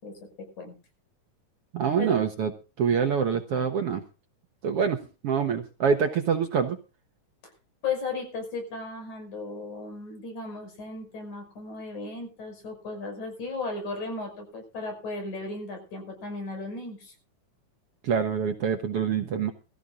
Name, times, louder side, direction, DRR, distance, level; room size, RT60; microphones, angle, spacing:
voice 1, 1.7-2.5 2.8-4.0 4.6-5.0 5.2-6.8 18.0-19.5, right 6 dB, 60° right, 6 dB, 1.8 m, -25 dB
voice 2, 7.8-17.1, left 3 dB, 65° left, 5 dB, 7.1 m, -35 dB
22.5 x 14.0 x 2.5 m, 0.32 s
omnidirectional pair, 3.7 m